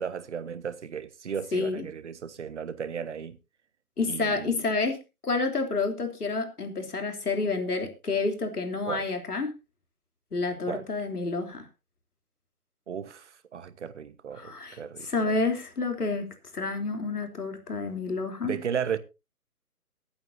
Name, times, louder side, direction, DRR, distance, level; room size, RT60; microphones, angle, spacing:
voice 1, 0.0-3.4 4.1-4.7 8.8-9.1 10.6-10.9 12.9-15.3 18.4-19.0, right 7 dB, 50° right, 1.2 m, -35 dB
voice 2, 1.5-1.8 4.0-5.0 5.2-9.5 10.3-11.7 14.4-16.3 16.5-18.6, left 3 dB, 80° left, 3.4 m, -29 dB
23.0 x 8.8 x 2.7 m
figure-of-eight pair, 150°, 45 cm